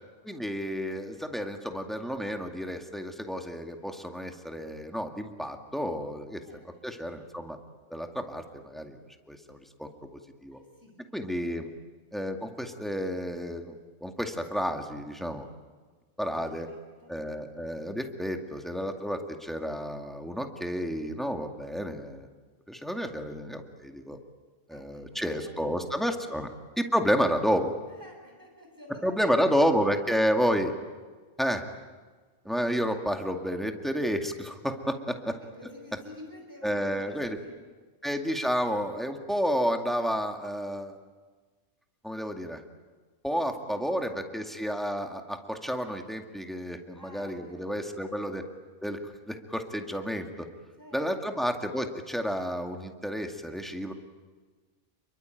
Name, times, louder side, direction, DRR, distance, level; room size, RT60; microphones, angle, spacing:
voice 1, 0.2-6.4 6.8-7.6 7.9-9.0 9.3-10.6 11.1-11.7 12.1-15.5 16.2-16.7 17.1-22.3 22.7-24.2 24.7-26.5 26.8-27.7 29.0-30.7 31.4-31.6 32.5-35.4 36.6-37.4 38.0-40.9 42.0-42.6 43.2-48.4 48.8-49.0 49.3-50.5 50.9-53.9, equal, ahead, 4 dB, 2.1 m, -30 dB
voice 2, 6.4-6.9 10.5-11.1 11.4-11.6 16.3-17.1 24.7-26.2 27.9-29.6 32.4-32.6 35.3-37.7 43.6-44.2 46.9-47.7 48.0-48.1 50.8-51.4, left 1 dB, 15° right, 1 dB, 7.1 m, -50 dB
28.5 x 22.5 x 9.2 m, 1.4 s
omnidirectional pair, 1.3 m